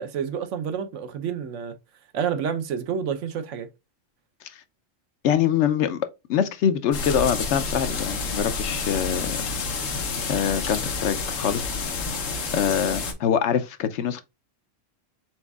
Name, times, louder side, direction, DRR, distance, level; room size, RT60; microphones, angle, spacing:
voice 1, 0.0-1.7 2.1-3.7, right 7 dB, 80° right, 1.0 m, -29 dB
voice 2, 5.2-6.0 6.3-9.4 10.3-11.8 12.5-14.2, left 8 dB, 70° left, 0.9 m, -24 dB
sound 1, 6.9-13.1, left 4 dB, 90° left, 1.3 m, -29 dB
4.4 x 4.0 x 2.3 m
omnidirectional pair, 1.3 m